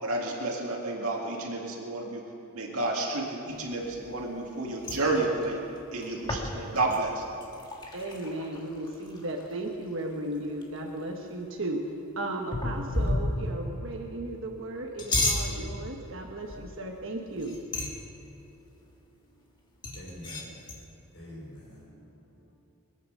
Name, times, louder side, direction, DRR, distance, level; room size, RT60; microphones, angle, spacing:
voice 1, 0.0-2.2 2.5-5.6 5.9-7.2, right 2 dB, 75° right, -2 dB, 2.1 m, -30 dB
sound 1, 3.6-4.5 4.8-9.7 10.0-10.1 10.3-11.0 12.5-13.7 14.8-15.5 16.5-16.8 17.3-18.1 19.8-20.8, left 2 dB, 20° left, 1.6 m, -32 dB
voice 2, 7.9-11.8 12.2-17.6, right 1 dB, 60° right, 1 dB, 1.3 m, -35 dB
voice 3, 19.9-20.7 21.1-22.5, equal, 50° left, -8 dB, 4.0 m, -46 dB
22.5 x 9.1 x 6.7 m, 2.9 s
head